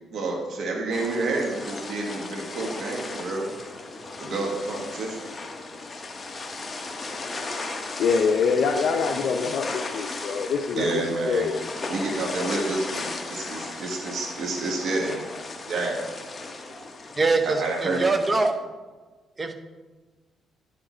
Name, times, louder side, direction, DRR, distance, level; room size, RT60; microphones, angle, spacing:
voice 1, 0.1-3.5 4.2-5.2 10.8-11.5 11.9-15.2 15.7-16.0 17.4-18.0, right 3 dB, 65° right, 0 dB, 1.5 m, -29 dB
sound 1, 0.9-18.5, left 3 dB, 30° left, 1.0 m, -36 dB
voice 2, 8.0-10.9 11.3-11.6, left 5 dB, 65° left, 3 dB, 0.5 m, -24 dB
voice 3, 17.2-18.6 19.4-19.5, right 3 dB, 30° right, 7 dB, 0.8 m, -23 dB
10.5 x 5.2 x 4.4 m, 1.3 s
cardioid pair, 90°, 0 cm